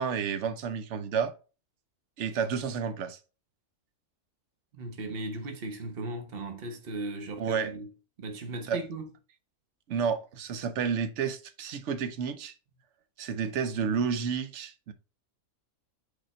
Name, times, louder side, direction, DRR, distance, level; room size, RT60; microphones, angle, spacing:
voice 1, 0.0-1.3 2.2-3.2 7.4-7.7 8.7-8.8 9.9-12.5 13.2-14.9, right 6 dB, 65° right, 1.0 m, -30 dB
voice 2, 4.7-7.9 8.2-9.1, right 2 dB, 50° right, 1.2 m, -37 dB
5.2 x 4.4 x 4.3 m
omnidirectional pair, 1.4 m